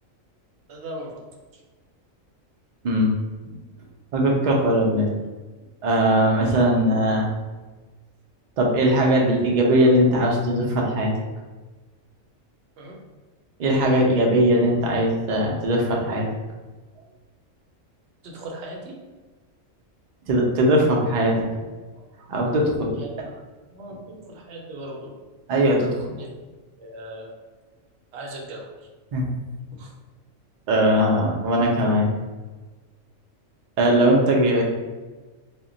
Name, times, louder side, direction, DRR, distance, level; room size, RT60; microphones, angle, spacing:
voice 1, 0.7-1.2 12.8-13.0 18.2-19.0 22.9-23.2 23.7-25.1 26.2-26.3 26.8-27.3 28.1-28.7 29.2-29.4 29.8-29.9, right 1 dB, 65° right, -1 dB, 0.7 m, -38 dB
voice 2, 4.1-5.1 5.8-7.3 8.6-11.1 13.6-16.3 20.3-21.7 22.3-23.0 25.5-25.9 29.1-29.3 30.7-32.1 33.8-34.6, right 1 dB, 80° right, -1 dB, 0.4 m, -20 dB
2.1 x 2.1 x 3.7 m, 1.3 s
omnidirectional pair, 1.4 m